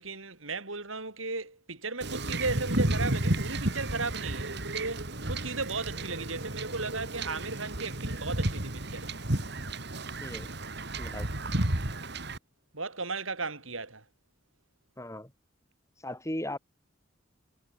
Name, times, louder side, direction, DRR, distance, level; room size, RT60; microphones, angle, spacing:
voice 1, 0.0-9.2 12.7-14.0, right 3 dB, 90° right, 7.0 m, -36 dB
Wind / Ocean / Boat Water vehicle, 2.0-12.4, right 1 dB, 55° right, 2.9 m, -32 dB
voice 2, 11.0-11.3 15.0-15.3 16.0-16.6, left 1 dB, 15° left, 6.7 m, -37 dB
head